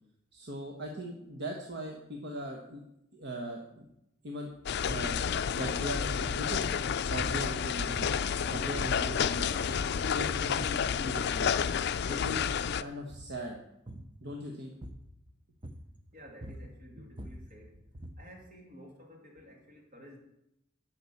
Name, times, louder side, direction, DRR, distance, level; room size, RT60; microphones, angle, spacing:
voice 1, 0.3-2.8 3.1-3.8 4.2-4.5 4.9-5.2 5.5-6.6 7.1-8.1 8.5-9.5 10.1-11.5 12.1-13.6 14.2-14.7, equal, 60° right, 1 dB, 1.2 m, -39 dB
sound 1, 4.7-12.8, left 7 dB, 55° left, 0.4 m, -30 dB
sound 2, 6.3-6.5 7.2-7.5 8.0-8.5 8.8-9.3 9.7-10.0 10.4-10.9 11.4-11.7 12.0-12.6 13.0-13.4 13.9-14.2 14.8-15.2 15.6-16.0 16.3-18.3, right 1 dB, 25° right, 0.8 m, -45 dB
voice 2, 16.1-17.8 18.2-20.2, equal, 45° right, -1 dB, 2.8 m, -52 dB
10.5 x 6.0 x 7.1 m, 0.83 s
head